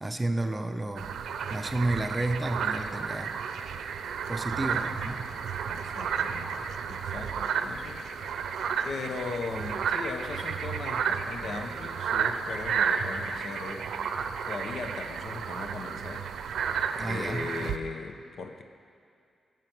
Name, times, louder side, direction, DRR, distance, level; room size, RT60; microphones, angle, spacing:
voice 1, 0.0-1.1 1.5-3.3 4.3-5.3 17.0-17.7, right 2 dB, 20° right, 7 dB, 0.7 m, -31 dB
sound 1, 1.0-17.8, right 6 dB, 90° right, 0.6 m, -32 dB
voice 2, 5.7-8.5 8.8-13.9 14.2-16.3 17.0-18.6, left 4 dB, 65° left, 6 dB, 1.0 m, -39 dB
15.5 x 7.5 x 6.1 m, 2.4 s
cardioid pair, 105°, 0 cm